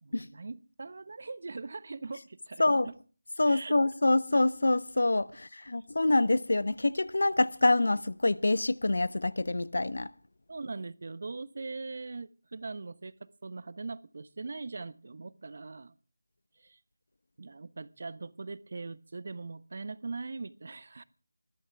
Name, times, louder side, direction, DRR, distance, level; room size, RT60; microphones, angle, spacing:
voice 1, 0.0-3.0 3.5-3.7 10.5-15.9 16.6-16.8 17.4-21.0, right 3 dB, 50° right, 1.1 m, -41 dB
voice 2, 3.4-10.1, left 2 dB, 65° left, 1.0 m, -26 dB
21.5 x 15.0 x 3.6 m
figure-of-eight pair, 165°, 0 cm